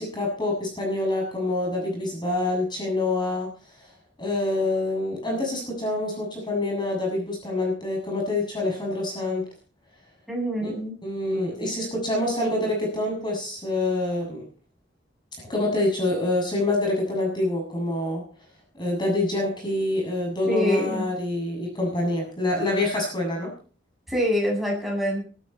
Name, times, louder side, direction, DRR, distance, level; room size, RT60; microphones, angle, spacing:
voice 1, 0.0-3.5 3.8-3.9 4.2-9.5 10.6-10.7 11.0-14.4 15.4-18.2 18.7-23.5, left 2 dB, 25° left, 0 dB, 7.1 m, -26 dB
voice 2, 10.3-11.0 20.5-21.0 24.1-25.3, equal, ahead, -1 dB, 7.7 m, -25 dB
18.0 x 14.0 x 4.3 m, 0.38 s
head